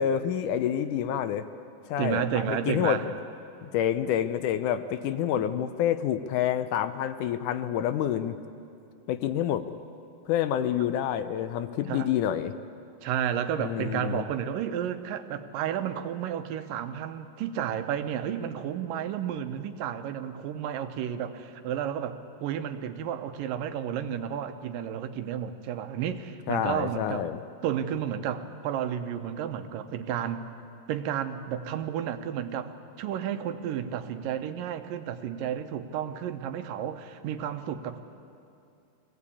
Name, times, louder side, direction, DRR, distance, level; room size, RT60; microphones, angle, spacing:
voice 1, 0.0-1.5 1.9-3.0 3.6-8.4 9.1-9.8 10.3-12.5 13.6-14.2 26.5-27.4, left 10 dB, 75° left, 11 dB, 2.1 m, -28 dB
voice 2, 2.0-3.1 5.4-5.5 8.6-8.7 11.9-12.1 13.0-27.3 27.6-30.4 30.9-38.0, right 9 dB, 80° right, 8 dB, 2.6 m, -32 dB
23.0 x 17.0 x 8.5 m, 2.6 s
omnidirectional pair, 3.9 m